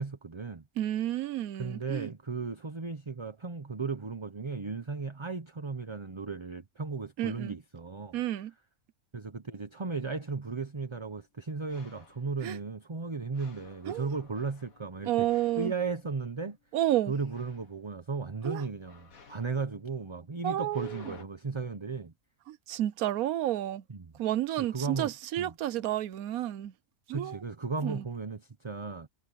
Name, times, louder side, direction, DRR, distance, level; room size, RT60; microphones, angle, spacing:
voice 1, 0.0-0.6 1.6-8.2 9.1-15.3 15.6-16.6 17.1-22.1 23.9-24.1 24.6-25.5 27.1-29.1, right 4 dB, 25° right, 0.8 m, -35 dB
voice 2, 0.8-2.1 7.2-7.5 8.1-8.5 12.4-12.6 13.9-14.1 15.0-15.7 16.7-17.1 18.4-18.6 20.4-21.0 22.5-23.8 24.2-26.7 27.1-27.4 27.8-28.0, right 13 dB, 85° right, 1.2 m, -31 dB
sound 1, 11.7-12.4 13.3-16.6 17.1-17.8 18.9-21.2, left 5 dB, 75° left, 2.3 m, -56 dB
omnidirectional pair, 1.5 m